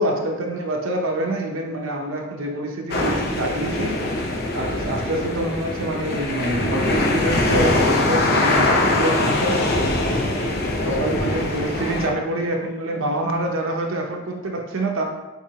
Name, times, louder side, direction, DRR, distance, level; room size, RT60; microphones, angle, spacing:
voice 1, 0.0-4.0 4.4-9.6 10.1-10.3 10.8-15.0, right 1 dB, 75° right, 1 dB, 0.7 m, -26 dB
sound 1, 2.9-12.1, left 2 dB, 50° left, 0.7 m, -22 dB
voice 2, 9.5-11.0 11.7-12.5, equal, 30° left, -5 dB, 1.3 m, -44 dB
4.7 x 3.6 x 2.8 m, 1.2 s
head